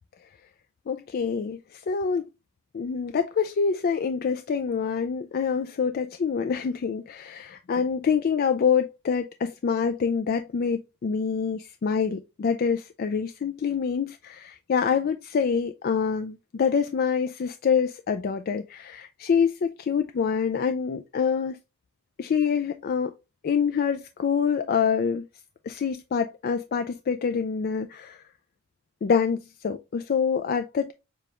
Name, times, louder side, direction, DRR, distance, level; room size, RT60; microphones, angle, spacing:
voice 1, 0.9-2.3 2.7-21.6 22.2-23.1 23.4-25.3 25.6-28.2 29.0-30.9, left 6 dB, 45° left, 0.3 m, -26 dB
6.8 x 2.3 x 2.9 m
head